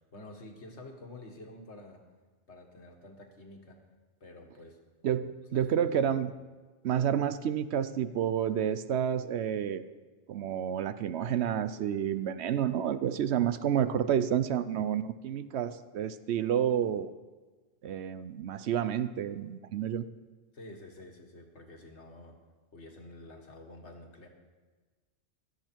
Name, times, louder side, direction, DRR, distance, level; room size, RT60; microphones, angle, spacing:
voice 1, 0.0-2.0 2.5-3.8 4.2-4.8 5.5-6.1 20.5-22.4 22.7-24.3, left 2 dB, 70° left, 2 dB, 2.0 m, -49 dB
voice 2, 5.0-6.3 6.8-9.8 10.3-17.1 17.8-20.1, right 9 dB, 70° right, 13 dB, 0.9 m, -30 dB
16.5 x 12.0 x 4.5 m, 1.3 s
omnidirectional pair, 1.2 m